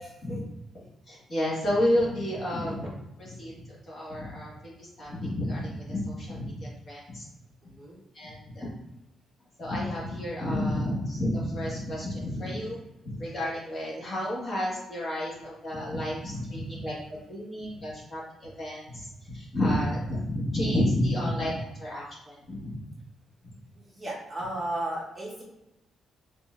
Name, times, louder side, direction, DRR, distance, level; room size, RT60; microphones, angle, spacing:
voice 1, 1.1-3.6 3.9-7.3 8.1-8.7 9.6-12.8 13.0-22.7, left 1 dB, 35° left, -5 dB, 1.4 m, -31 dB
voice 2, 7.6-8.0 23.7-25.4, right 1 dB, 15° right, -6 dB, 1.1 m, -34 dB
3.9 x 3.9 x 2.4 m, 0.93 s
cardioid pair, 145°, 0 cm